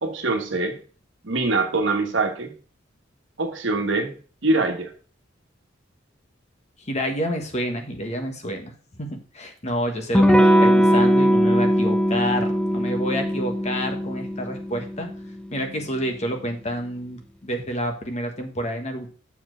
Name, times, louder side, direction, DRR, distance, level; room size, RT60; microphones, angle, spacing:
voice 1, 0.0-0.8 1.2-2.5 3.4-4.1 4.4-4.9, right 3 dB, 70° right, 4 dB, 1.3 m, -23 dB
voice 2, 6.8-8.7 9.0-15.1 15.5-19.1, equal, 35° left, 5 dB, 1.4 m, -29 dB
Electric guitar / Strum, 10.1-15.5, equal, 5° left, 0.7 m, -20 dB
7.2 x 4.5 x 6.1 m, 0.40 s
head